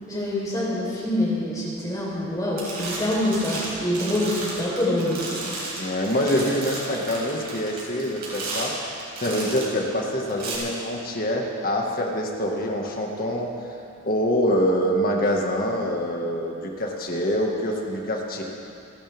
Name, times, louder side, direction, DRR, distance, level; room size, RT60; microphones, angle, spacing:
voice 1, 0.1-5.4, left 1 dB, 20° left, -6 dB, 4.3 m, -25 dB
sound 1, 2.1-2.3 2.6-9.8 10.3-10.6, right 2 dB, 50° right, 4.6 m, -34 dB
voice 2, 5.8-13.5 14.1-18.4, equal, 45° left, 0 dB, 1.9 m, -25 dB
28.5 x 12.0 x 3.7 m, 2.7 s
head